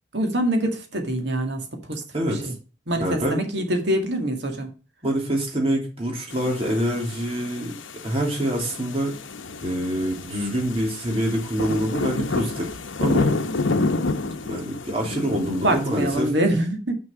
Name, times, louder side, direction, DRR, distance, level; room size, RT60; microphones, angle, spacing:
voice 1, 0.1-2.0 2.3-2.5 2.9-4.7 15.6-16.9, right 1 dB, 60° right, 4 dB, 2.0 m, -24 dB
voice 2, 2.1-2.5 3.0-3.4 5.0-7.7 8.0-9.2 9.6-12.7 13.0-13.3 14.4-16.3, right 1 dB, 30° right, 0 dB, 3.1 m, -25 dB
sound 1, 6.3-16.3, left 3 dB, 75° left, 0.9 m, -29 dB
6.3 x 6.0 x 7.2 m, 0.35 s
head